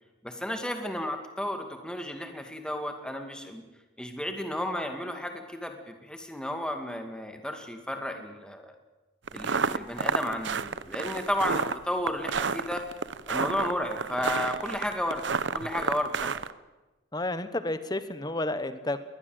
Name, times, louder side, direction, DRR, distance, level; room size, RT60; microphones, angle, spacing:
voice 1, 0.2-3.6 4.0-8.8 9.3-12.8 13.3-15.2 15.5-16.4, left 1 dB, 5° left, 5 dB, 2.2 m, -33 dB
sound 1, 9.3-16.5, right 5 dB, 70° right, 0.8 m, -30 dB
voice 2, 17.1-19.0, left 2 dB, 20° left, 12 dB, 1.1 m, -31 dB
22.0 x 20.0 x 7.9 m, 1.1 s
head